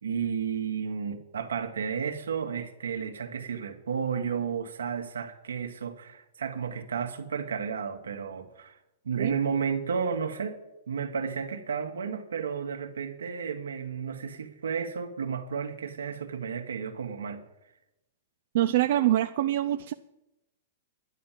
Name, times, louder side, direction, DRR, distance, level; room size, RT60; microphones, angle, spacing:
voice 1, 0.0-8.8 9.1-10.6 10.9-17.4, right 6 dB, 85° right, 6 dB, 1.7 m, -32 dB
voice 2, 18.5-19.9, right 13 dB, 60° right, 8 dB, 0.5 m, -25 dB
11.0 x 11.0 x 7.5 m, 0.93 s
hypercardioid pair, 115°, 0 cm